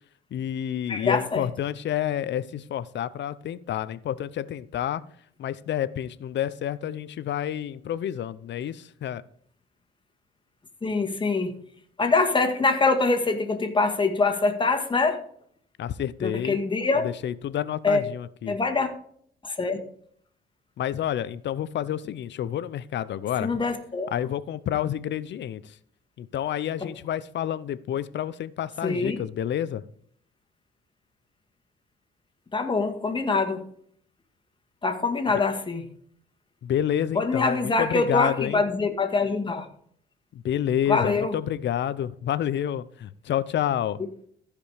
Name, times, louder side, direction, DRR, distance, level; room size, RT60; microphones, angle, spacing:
voice 1, 0.3-5.0 5.4-9.2 15.8-16.6 17.0-18.6 20.8-23.5 24.1-25.8 26.2-29.8 36.6-38.6 40.3-44.0, left 10 dB, 65° left, 16 dB, 0.7 m, -29 dB
voice 2, 0.9-1.5 10.8-11.6 12.0-15.2 16.2-17.1 17.8-18.0 18.5-18.9 19.4-19.8 23.4-24.1 26.8-26.9 28.8-29.2 32.5-33.6 34.8-35.8 37.2-39.7 40.9-41.4, left 3 dB, 25° left, 6 dB, 1.9 m, -24 dB
14.5 x 5.1 x 5.0 m, 0.63 s
cardioid pair, 90°, 20 cm